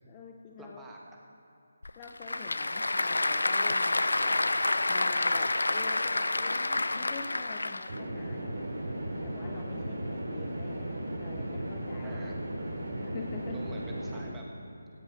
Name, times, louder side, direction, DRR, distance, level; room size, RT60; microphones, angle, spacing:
voice 1, 0.1-0.8 2.0-4.4 4.9-8.6 9.2-12.2 12.9-13.6, left 5 dB, 20° left, 2 dB, 0.7 m, -46 dB
voice 2, 0.6-1.0 12.0-12.8 13.5-14.4, right 2 dB, 10° right, -2 dB, 1.4 m, -49 dB
Applause / Crowd, 1.8-8.0, left 2 dB, 80° left, 0.5 m, -28 dB
sound 1, 7.9-14.2, right 1 dB, 70° right, 3.4 m, -36 dB
15.5 x 8.6 x 6.2 m, 2.8 s
figure-of-eight pair, 155°, 0 cm